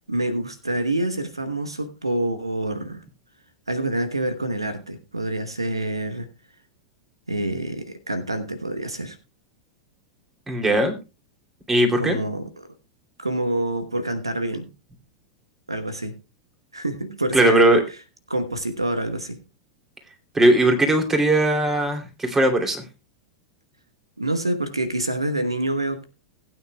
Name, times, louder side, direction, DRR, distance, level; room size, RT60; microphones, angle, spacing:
voice 1, 0.0-3.0 3.7-6.3 7.3-9.2 12.0-12.7 13.2-14.7 15.7-16.2 16.7-17.8 18.3-19.4 24.2-26.0, right 1 dB, 90° right, 9 dB, 1.1 m, -27 dB
voice 2, 10.5-10.9 11.7-12.2 17.3-17.8 20.3-22.8, right 1 dB, 15° right, 4 dB, 2.9 m, -19 dB
19.5 x 9.2 x 2.3 m, 0.29 s
figure-of-eight pair, 90°, 3 cm